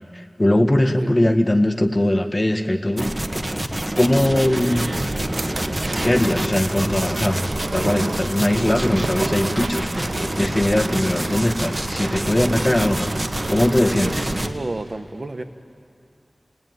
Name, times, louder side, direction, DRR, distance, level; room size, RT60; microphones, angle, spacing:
voice 1, 0.1-3.1 4.0-5.0 6.0-9.9 10.4-13.1 13.5-14.3, left 1 dB, 30° left, 6 dB, 1.6 m, -20 dB
sound 1, 3.0-14.5, right 1 dB, 25° right, 1.5 m, -26 dB
sound 2, 4.5-14.3, right 3 dB, 80° right, 0.8 m, -33 dB
voice 2, 13.9-15.4, right 2 dB, 55° right, 7 dB, 1.4 m, -30 dB
29.5 x 19.0 x 9.5 m, 2.4 s
wide cardioid pair, 45°, 0 cm